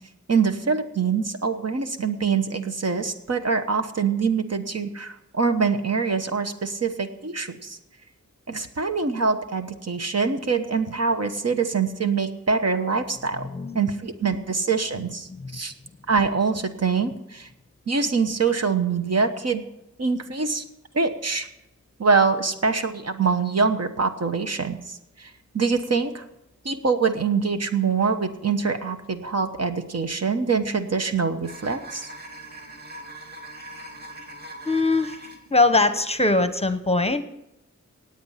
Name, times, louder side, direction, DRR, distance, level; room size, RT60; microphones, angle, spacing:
voice 1, 0.3-7.8 8.5-13.5 13.7-15.7 16.1-17.5 17.9-19.6 20.0-20.6 20.9-21.5 22.0-25.3 25.5-26.2 26.6-32.1, right 5 dB, 55° right, 7 dB, 1.1 m, -24 dB
voice 2, 13.4-13.8 14.9-15.6 34.6-35.2 35.5-37.2, left 3 dB, 20° left, 10 dB, 0.8 m, -22 dB
sound 1, 31.4-35.5, right 2 dB, 30° right, 2.4 m, -41 dB
17.0 x 8.9 x 5.7 m, 0.87 s
wide cardioid pair, 105°, 30 cm